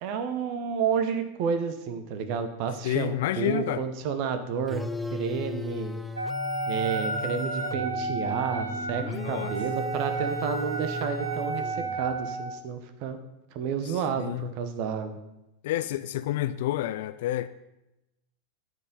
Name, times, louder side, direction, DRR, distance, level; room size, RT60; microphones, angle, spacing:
voice 1, 0.0-4.8 5.1-5.9 6.7-13.2 13.5-15.2, right 6 dB, 45° right, 0.9 m, -30 dB
voice 2, 2.8-3.8 9.1-9.5 13.8-14.5 15.6-17.5, left 13 dB, 55° left, 0.3 m, -29 dB
sound 1, 4.7-12.1, equal, ahead, 0.5 m, -36 dB
Wind instrument woodwind instrument, 6.2-12.6, right 3 dB, 80° right, 0.7 m, -32 dB
13.5 x 4.7 x 3.9 m
figure-of-eight pair, 90°, 0 cm